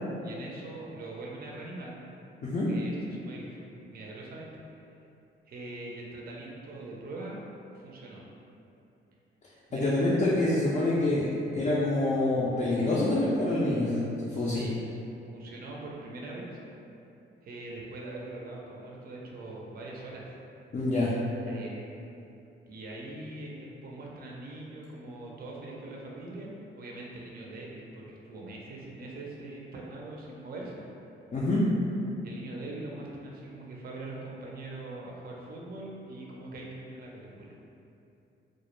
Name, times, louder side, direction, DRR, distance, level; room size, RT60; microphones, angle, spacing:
voice 1, 0.2-2.0 2.7-4.8 5.5-7.4 7.7-8.2 9.7-10.3 14.3-14.8 15.3-16.6 17.4-20.3 21.4-22.1 22.7-30.9 32.2-37.6, right 2 dB, 45° right, -3 dB, 0.5 m, -42 dB
voice 2, 9.7-11.2 11.5-14.1 14.3-14.7 20.7-21.1 31.3-31.6, left 2 dB, 35° left, -8 dB, 0.4 m, -26 dB
2.1 x 2.0 x 2.9 m, 2.8 s
cardioid pair, 80°, 21 cm